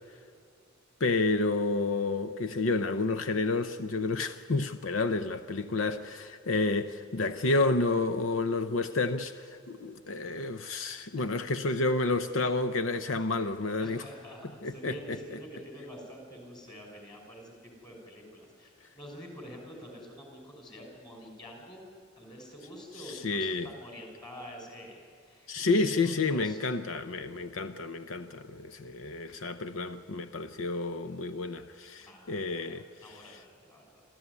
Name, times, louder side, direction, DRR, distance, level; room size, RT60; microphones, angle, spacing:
voice 1, 1.0-14.1 14.6-15.4 23.0-23.7 25.5-33.4, left 3 dB, 80° left, 0.8 m, -30 dB
voice 2, 5.1-5.6 11.2-11.3 13.4-13.5 13.8-21.9 22.2-26.7 32.0-34.0, equal, 20° left, 5.8 m, -47 dB
26.5 x 14.5 x 9.7 m
head